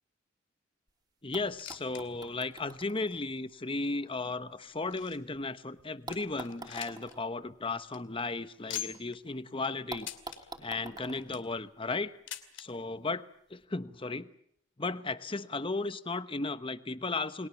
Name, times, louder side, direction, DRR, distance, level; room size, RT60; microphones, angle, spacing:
sound 1, 0.9-1.0 1.3-5.4 6.1-9.0 9.3-9.4 9.9-12.3 13.3-13.4, right 2 dB, 20° right, 3.0 m, -49 dB
voice 1, 1.2-10.1 10.6-12.2 12.6-14.3 14.8-17.5, left 3 dB, 25° left, 12 dB, 1.0 m, -35 dB
sound 2, 1.6-2.0 2.3-2.4 3.1-3.2 3.9-5.4 5.8-5.9 6.1-7.2 7.5-7.6 7.8-8.0 8.7-9.2 10.0-10.4 11.0-11.5 12.3-12.7 13.6-13.7 13.9-14.0 14.8-14.9, left 11 dB, 65° left, 2.5 m, -43 dB
29.5 x 22.0 x 7.2 m, 0.69 s
head